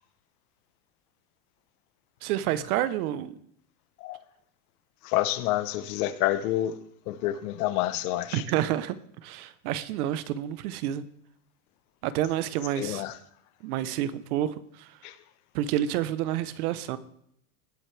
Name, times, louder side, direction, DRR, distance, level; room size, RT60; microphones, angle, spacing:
voice 1, 2.2-3.4 8.3-9.0 9.2-11.0 12.0-13.0 13.6-14.9 15.5-17.0, right 12 dB, 70° right, 1.1 m, -29 dB
voice 2, 5.0-6.8 7.1-8.4 12.8-13.2 15.0-15.1, left 14 dB, 70° left, 1.2 m, -28 dB
19.5 x 7.6 x 3.4 m
supercardioid pair, 130°, 46 cm